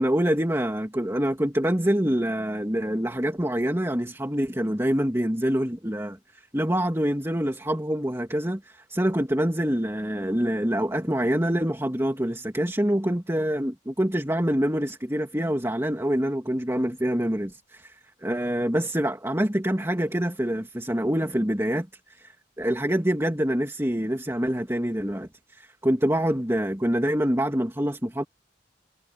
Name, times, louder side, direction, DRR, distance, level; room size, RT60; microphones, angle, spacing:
voice 1, 0.0-6.2 6.5-17.9 18.2-22.3 22.6-28.2, equal, 15° right, 2.8 m, -25 dB
head